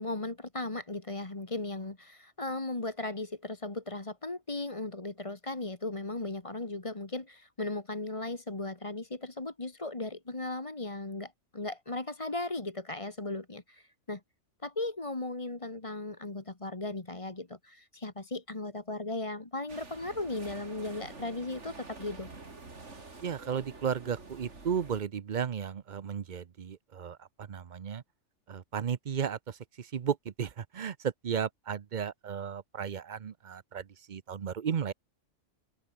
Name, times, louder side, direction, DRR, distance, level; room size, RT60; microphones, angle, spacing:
voice 1, 0.0-14.2 14.6-22.3, left 2 dB, 25° left, 1.9 m, -37 dB
sound 1, 19.7-25.0, right 3 dB, 70° right, 3.4 m, -48 dB
voice 2, 23.2-28.0 28.5-34.9, right 7 dB, 45° right, 0.8 m, -34 dB
omnidirectional pair, 1.3 m